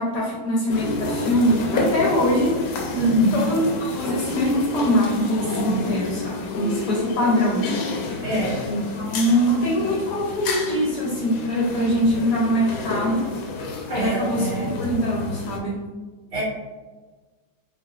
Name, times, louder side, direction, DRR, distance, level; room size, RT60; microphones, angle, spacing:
voice 1, 0.0-2.6 3.3-7.7 8.7-13.3 13.9-15.9, equal, 65° left, -4 dB, 1.2 m, -23 dB
sound 1, 0.7-15.6, left 3 dB, 85° left, 1.4 m, -29 dB
voice 2, 2.9-3.5 5.6-6.0 8.2-8.6 13.9-14.7 16.3-16.4, right 1 dB, 40° right, -9 dB, 1.4 m, -23 dB
3.8 x 3.6 x 2.3 m, 1.3 s
omnidirectional pair, 2.2 m